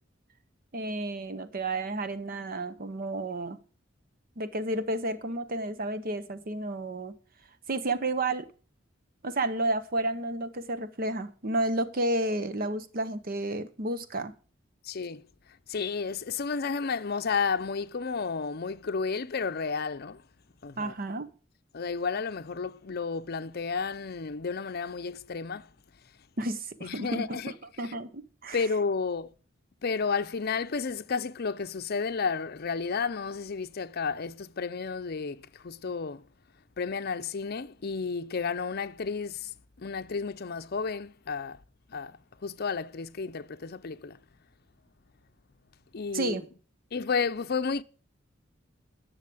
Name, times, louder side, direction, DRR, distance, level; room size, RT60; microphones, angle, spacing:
voice 1, 0.7-3.6 4.4-7.1 7.7-8.5 9.2-14.3 20.8-21.3 26.4-27.4 27.8-28.6 46.1-46.4, right 2 dB, 50° right, 0.9 m, -31 dB
voice 2, 14.8-15.2 15.7-20.2 20.6-20.9 21.7-25.7 26.8-27.5 27.8-27.9 28.5-29.3 29.8-36.2 36.8-41.6 41.9-44.2 45.9-46.4 46.9-47.8, left 5 dB, 55° left, 0.6 m, -32 dB
11.0 x 6.5 x 7.7 m
head